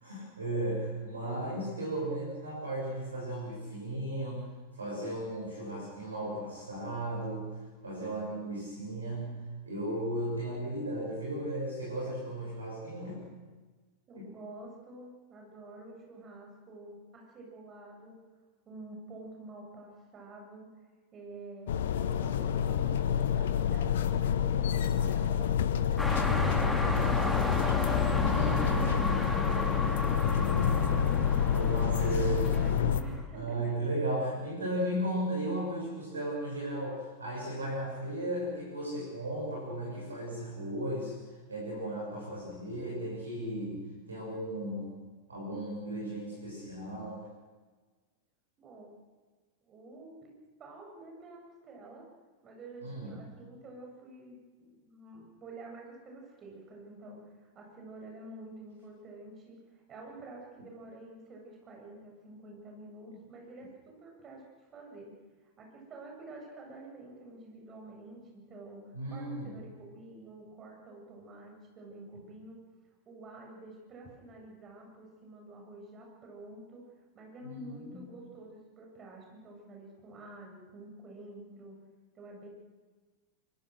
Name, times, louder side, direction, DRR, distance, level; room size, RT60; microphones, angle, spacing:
voice 1, 0.0-4.5 4.8-7.5 7.8-9.4 9.6-13.2 14.2-14.3 28.2-29.2 31.5-41.2 41.5-45.0 45.3-47.2 52.8-53.3 68.9-69.5 77.4-78.1, right 1 dB, 75° right, -3 dB, 6.6 m, -35 dB
voice 2, 14.1-18.2 18.6-20.7 21.1-27.8 28.5-33.7 48.6-48.9 49.6-50.3 50.6-52.1 52.4-65.1 65.6-72.6 73.1-76.8 77.1-81.8 82.1-82.5, right 2 dB, 25° right, 0 dB, 7.9 m, -49 dB
sound 1, 21.7-33.0, left 8 dB, 60° left, 1.2 m, -28 dB
sound 2, 26.0-33.2, left 1 dB, 5° left, 2.9 m, -33 dB
24.0 x 24.0 x 6.5 m, 1.3 s
figure-of-eight pair, 90°, 0 cm